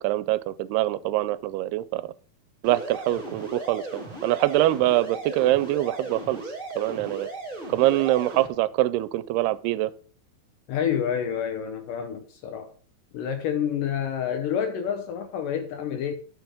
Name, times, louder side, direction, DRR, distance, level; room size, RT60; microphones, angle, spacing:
voice 1, 0.0-2.0 2.6-6.4 6.8-7.3 7.7-9.9, right 16 dB, 85° right, 2.5 m, -24 dB
sound 1, 2.6-8.5, right 2 dB, 20° right, 1.6 m, -37 dB
voice 2, 10.7-12.7 13.1-16.1, left 8 dB, 75° left, 2.1 m, -28 dB
10.0 x 6.1 x 5.0 m
omnidirectional pair, 4.6 m